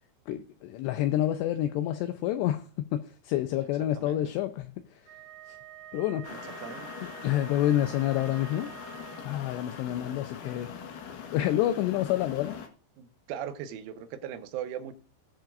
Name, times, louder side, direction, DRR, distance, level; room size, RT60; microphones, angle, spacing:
voice 1, 0.3-5.1 5.5-5.6 5.9-6.3 7.2-8.7 9.2-10.7 11.3-12.6, left 13 dB, 80° left, 8 dB, 2.6 m, -28 dB
voice 2, 3.9-4.3 6.3-7.5 13.0-14.9, right 9 dB, 90° right, 9 dB, 3.5 m, -40 dB
Wind instrument woodwind instrument, 5.0-9.6, right 11 dB, 70° right, 4.8 m, -48 dB
sound 1, 6.2-12.7, left 7 dB, 60° left, 2.5 m, -42 dB
20.0 x 7.5 x 2.5 m, 0.35 s
omnidirectional pair, 5.4 m